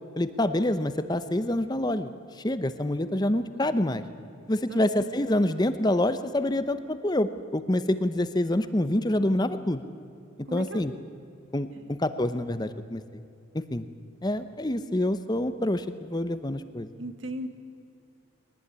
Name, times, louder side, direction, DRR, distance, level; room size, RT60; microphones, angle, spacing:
voice 1, 0.2-2.1 2.4-4.0 4.5-9.8 10.5-10.9 11.5-13.0 13.7-13.8 14.2-16.9, left 1 dB, 20° left, 11 dB, 0.8 m, -26 dB
voice 2, 4.7-5.1 10.5-10.9 11.8-11.9 17.0-17.5, right 1 dB, 75° right, 7 dB, 2.0 m, -37 dB
22.5 x 19.0 x 9.7 m, 2.5 s
head